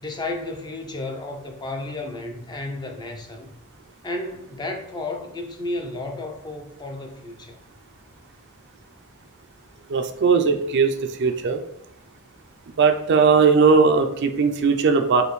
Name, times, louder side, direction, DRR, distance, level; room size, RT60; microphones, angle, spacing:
voice 1, 0.0-3.5 4.0-7.6, left 2 dB, 20° left, 0.5 m, -32 dB
voice 2, 9.9-11.6 12.8-15.2, right 5 dB, 50° right, 0.4 m, -18 dB
5.0 x 2.6 x 3.1 m
head